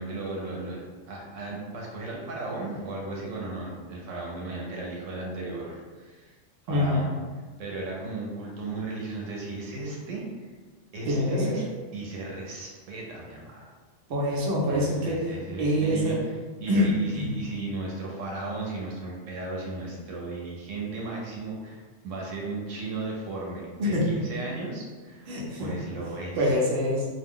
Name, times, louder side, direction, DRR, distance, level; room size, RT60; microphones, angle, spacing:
voice 1, 0.0-6.3 6.7-7.1 7.6-10.5 10.9-11.7 11.9-13.7 14.7-16.3 16.6-25.3 25.6-26.6, right 2 dB, 85° right, -2 dB, 1.0 m, -35 dB
voice 2, 6.7-7.0 11.1-11.6 14.1-15.2 15.6-16.2 16.7-17.3 23.8-24.0 25.3-25.7 26.4-27.1, left 1 dB, 60° right, -4 dB, 0.9 m, -25 dB
2.3 x 2.1 x 3.6 m, 1.4 s
omnidirectional pair, 1.3 m